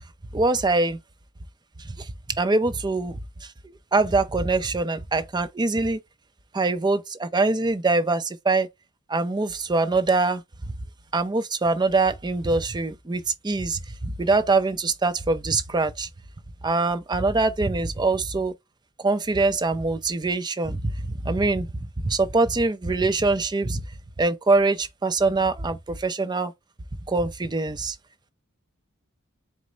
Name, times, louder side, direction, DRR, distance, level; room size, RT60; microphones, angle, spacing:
voice 1, 0.3-1.0 1.8-2.1 2.4-3.1 3.9-6.0 6.5-8.7 9.1-10.4 11.1-16.1 16.6-18.5 19.0-20.9 21.2-21.7 22.0-23.8 24.2-26.5 27.1-28.0, right 3 dB, 20° right, 0.5 m, -23 dB
4.6 x 2.0 x 3.8 m
head